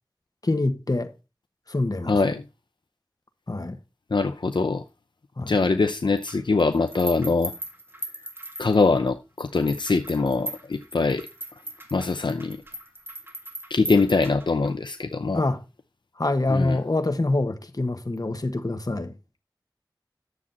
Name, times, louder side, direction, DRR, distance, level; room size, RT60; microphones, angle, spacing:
voice 1, 0.4-1.1 1.7-2.2 3.5-3.8 5.4-5.5 15.3-15.6 16.2-19.1, left 2 dB, 50° left, 1.3 m, -25 dB
voice 2, 2.0-2.4 4.1-4.8 5.5-7.5 8.6-11.3 11.9-12.6 13.7-15.4 16.5-16.8, left 3 dB, 75° left, 0.6 m, -23 dB
sound 1, 6.3-9.1 9.5-14.7, right 1 dB, 30° right, 2.0 m, -38 dB
9.9 x 7.4 x 4.0 m
wide cardioid pair, 55°, 8 cm